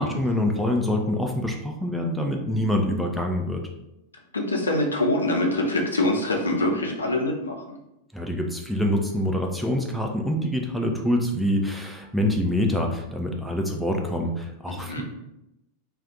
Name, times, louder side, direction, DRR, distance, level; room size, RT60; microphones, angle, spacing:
voice 1, 0.0-3.6 8.1-15.0, left 1 dB, ahead, 1 dB, 0.4 m, -25 dB
voice 2, 4.3-7.8 14.7-15.0, left 1 dB, 75° left, 0 dB, 0.6 m, -25 dB
2.4 x 2.4 x 3.7 m, 0.88 s
figure-of-eight pair, 90°, 0 cm